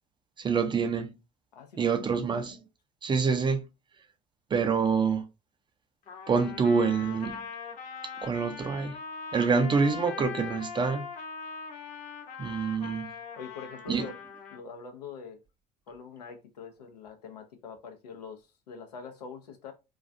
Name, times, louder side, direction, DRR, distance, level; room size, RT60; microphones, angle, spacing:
voice 1, 0.4-1.1 1.8-2.6 3.0-3.6 4.5-5.3 6.3-7.4 8.2-9.0 9.3-11.1 12.4-13.1 13.9-14.1, right 5 dB, 25° right, 0.4 m, -26 dB
voice 2, 1.5-2.1 13.4-14.1 14.5-15.4 15.9-19.7, left 5 dB, 90° left, 0.6 m, -44 dB
Trumpet, 6.1-14.6, left 6 dB, 40° left, 0.7 m, -41 dB
2.3 x 2.3 x 2.5 m
hypercardioid pair, 70°, 20 cm